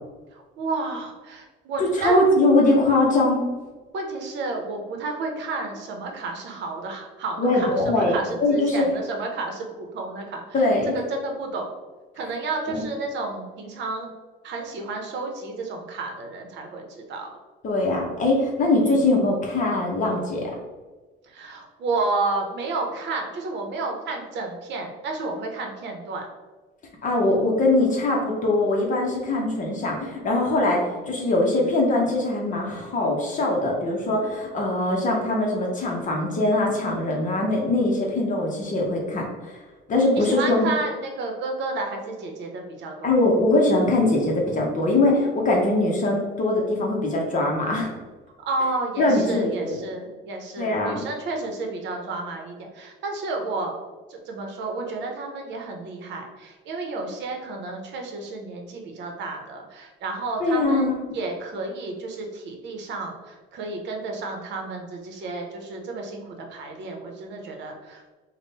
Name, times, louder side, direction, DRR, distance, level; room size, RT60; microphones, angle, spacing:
voice 1, 0.3-2.2 3.9-10.7 10.9-11.7 12.2-14.1 14.4-17.3 18.7-18.8 21.3-26.3 40.1-43.2 48.5-53.8 54.1-68.0, right 3 dB, 60° right, 2 dB, 0.8 m, -31 dB
voice 2, 1.8-3.4 7.4-8.9 10.5-10.9 12.7-12.8 17.6-20.5 27.0-39.6 39.9-40.7 43.0-47.9 49.0-49.8 50.6-51.0 60.4-60.9, left 2 dB, 40° left, -2 dB, 0.7 m, -22 dB
3.6 x 2.2 x 4.0 m, 1.3 s
cardioid pair, 125°, 21 cm